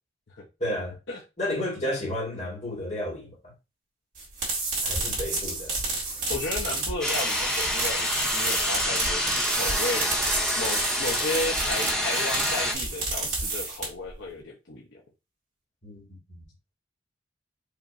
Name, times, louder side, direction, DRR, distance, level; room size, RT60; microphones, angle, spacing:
voice 1, 0.6-1.0 1.4-3.5 4.8-5.8 15.8-16.4, left 1 dB, 35° left, 1.9 m, -32 dB
sound 1, 4.1-14.1, right 3 dB, 45° right, 2.2 m, -31 dB
voice 2, 6.3-15.0, left 2 dB, 65° left, 0.8 m, -34 dB
sound 2, 7.0-12.7, left 1 dB, 5° left, 1.3 m, -27 dB
5.0 x 2.9 x 2.6 m
head